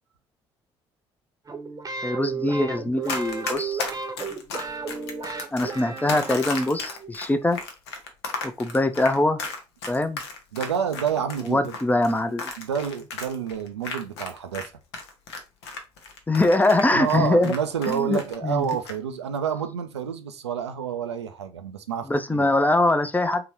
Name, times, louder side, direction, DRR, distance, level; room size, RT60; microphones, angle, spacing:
sound 1, 1.5-7.1, right 5 dB, 25° right, 0.8 m, -34 dB
voice 1, 2.0-3.8 5.5-7.6 8.4-9.4 9.9-10.2 11.5-12.5 16.3-17.5 17.9-18.7 22.1-23.5, left 2 dB, 10° left, 0.5 m, -23 dB
Run, 3.0-14.7 14.9-18.3 18.6-18.9, left 4 dB, 70° left, 0.7 m, -34 dB
voice 2, 10.5-11.6 12.6-14.7 16.9-22.5, right 8 dB, 80° right, 0.5 m, -28 dB
3.8 x 3.0 x 2.9 m
figure-of-eight pair, 50°, 14 cm